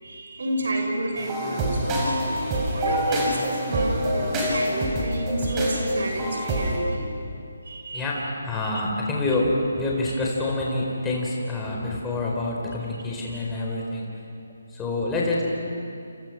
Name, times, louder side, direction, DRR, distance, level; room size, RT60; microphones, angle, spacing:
voice 1, 0.0-7.1 7.7-8.1 8.6-8.7 12.9-13.4, right 1 dB, 60° right, 2 dB, 7.1 m, -30 dB
sound 1, 1.2-6.8, right 1 dB, 20° right, 6.6 m, -26 dB
voice 2, 7.9-14.1 14.7-15.4, left 2 dB, 10° left, -3 dB, 4.2 m, -27 dB
29.5 x 28.5 x 6.1 m, 2.5 s
figure-of-eight pair, 145°, 0 cm